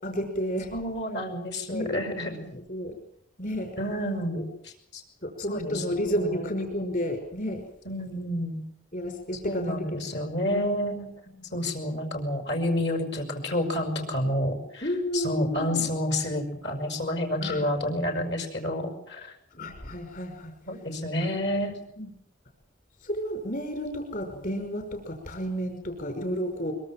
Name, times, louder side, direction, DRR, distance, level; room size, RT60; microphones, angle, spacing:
voice 1, 0.0-0.7 1.7-1.9 2.3-3.0 3.4-3.7 4.4-4.5 5.2-7.6 8.9-10.2 10.5-10.9 14.8-15.9 17.4-17.7 19.5-20.5 22.0-22.1 23.0-26.7, equal, 45° left, 5 dB, 5.6 m, -31 dB
voice 2, 0.7-2.3 3.8-5.0 5.5-6.5 7.9-8.6 9.4-11.1 11.5-14.9 15.1-19.3 20.7-21.8, left 1 dB, 60° left, 7 dB, 5.9 m, -29 dB
24.0 x 24.0 x 7.5 m, 0.72 s
head